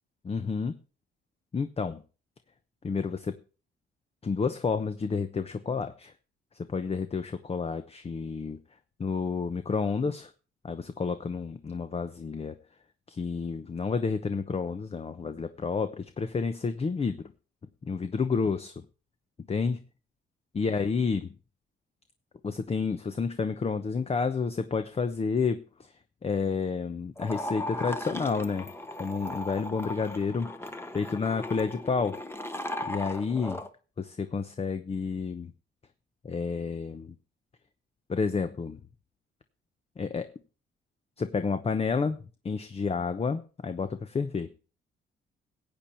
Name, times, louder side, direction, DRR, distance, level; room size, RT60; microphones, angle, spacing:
voice 1, 0.2-0.8 1.5-2.0 2.8-3.4 4.2-6.1 6.6-8.6 9.0-10.3 10.6-12.5 13.1-17.3 17.8-18.7 19.5-19.8 20.5-21.3 22.4-25.9 26.2-28.7 29.0-32.2 32.9-33.6 34.0-35.5 36.2-37.1 38.1-38.8 40.0-40.3 41.2-44.5, left 5 dB, 30° left, 10 dB, 0.9 m, -30 dB
sound 1, 27.2-33.7, left 1 dB, 10° left, 1.2 m, -37 dB
15.5 x 8.8 x 4.5 m, 0.36 s
cardioid pair, 90°, 20 cm